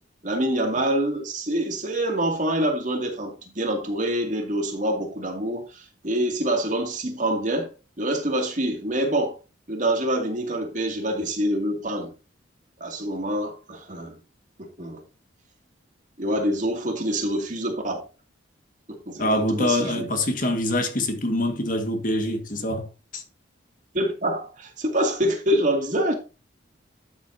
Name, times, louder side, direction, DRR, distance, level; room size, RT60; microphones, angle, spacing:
voice 1, 0.2-7.7 8.0-9.4 9.7-12.1 12.8-14.2 14.6-15.0 16.2-18.1 18.9-20.1 23.9-26.1, right 1 dB, 40° right, 2.4 m, -26 dB
voice 2, 19.2-22.9 23.1-23.2, left 1 dB, 45° left, 1.8 m, -25 dB
12.5 x 7.5 x 2.7 m
head